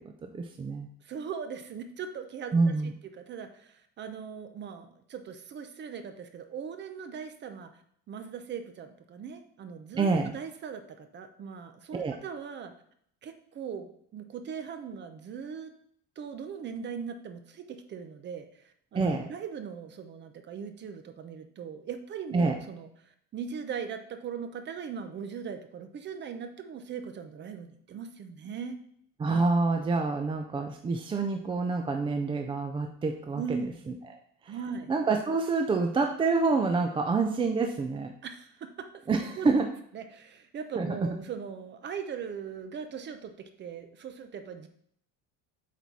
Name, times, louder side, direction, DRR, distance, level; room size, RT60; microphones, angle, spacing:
voice 1, 0.2-0.9 2.5-2.9 10.0-10.3 11.9-12.2 18.9-19.3 22.3-22.5 29.2-33.6 33.9-34.0 34.4-34.6 34.9-38.1 39.1-39.7 40.8-40.9, right 3 dB, 15° right, 4 dB, 0.4 m, -27 dB
voice 2, 1.0-7.7 8.1-12.7 13.2-15.7 16.2-22.9 23.3-28.8 33.4-33.8 34.5-34.9 38.2-38.9 39.4-39.5 39.9-44.7, right 6 dB, 35° right, 8 dB, 0.8 m, -39 dB
8.2 x 4.2 x 4.6 m, 0.67 s
cardioid pair, 165°, 32 cm